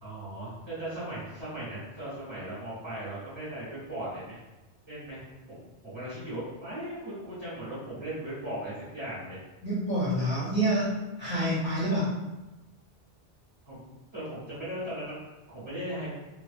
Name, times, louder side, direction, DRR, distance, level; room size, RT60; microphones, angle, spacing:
voice 1, 0.0-4.4 4.9-9.4 11.4-11.5 13.6-16.1, right 1 dB, 25° right, -13 dB, 1.1 m, -38 dB
voice 2, 9.6-12.1, right 1 dB, 50° left, -9 dB, 0.7 m, -27 dB
3.0 x 2.0 x 2.5 m, 1.0 s
omnidirectional pair, 1.1 m